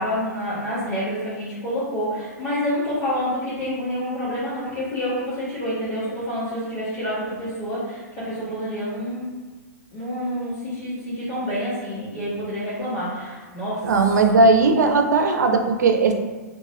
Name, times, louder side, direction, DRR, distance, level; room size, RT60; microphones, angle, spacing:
voice 1, 0.0-9.3 9.9-13.9, equal, 25° left, -12 dB, 1.1 m, -28 dB
voice 2, 13.8-16.1, right 3 dB, 80° right, 4 dB, 0.4 m, -17 dB
2.8 x 2.1 x 3.0 m, 1.3 s
hypercardioid pair, 120°, 9 cm